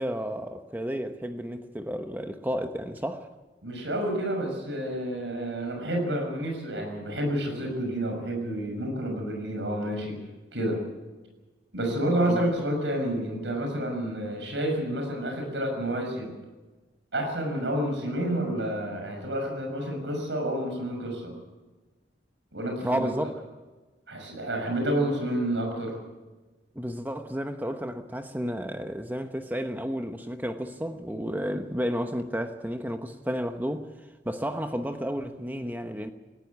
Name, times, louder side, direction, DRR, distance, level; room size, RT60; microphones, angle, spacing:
voice 1, 0.0-3.3 12.3-12.5 22.8-23.3 26.7-33.9 34.2-36.1, equal, 10° right, 1.0 m, -32 dB
voice 2, 3.6-10.2 10.5-10.8 11.7-16.3 17.1-21.3 22.5-23.3 24.1-26.0, right 1 dB, 90° right, 6.2 m, -29 dB
19.0 x 15.0 x 9.7 m
head